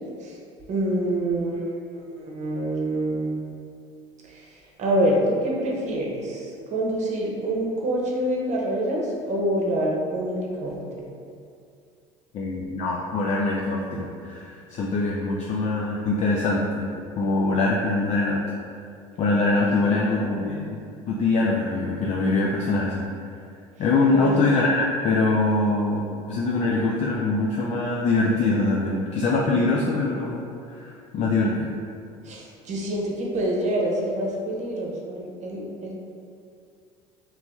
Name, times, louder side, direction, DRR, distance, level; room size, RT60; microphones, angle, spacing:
voice 1, 0.7-1.7 1.9-3.4 4.3-11.0 19.8-20.7 24.1-24.4 32.2-35.9, right 1 dB, 45° right, -2 dB, 0.9 m, -26 dB
voice 2, 12.3-16.9 17.2-18.4 19.2-23.1 23.8-30.4 30.7-31.7, left 3 dB, 45° left, -3 dB, 0.4 m, -23 dB
3.0 x 2.9 x 3.5 m, 2.4 s
hypercardioid pair, 70°, 16 cm